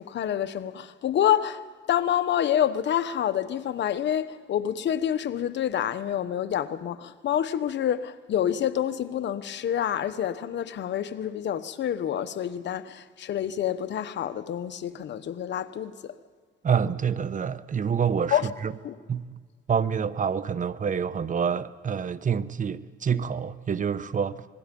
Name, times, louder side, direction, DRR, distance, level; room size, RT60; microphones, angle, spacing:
voice 1, 0.0-1.6 1.9-16.1 18.3-18.5 18.8-18.9, left 10 dB, 65° left, 1.1 m, -27 dB
voice 2, 16.6-18.7 19.1-19.3 19.7-24.5, right 7 dB, 40° right, 0.9 m, -27 dB
27.0 x 20.5 x 5.4 m
cardioid pair, 90°, 20 cm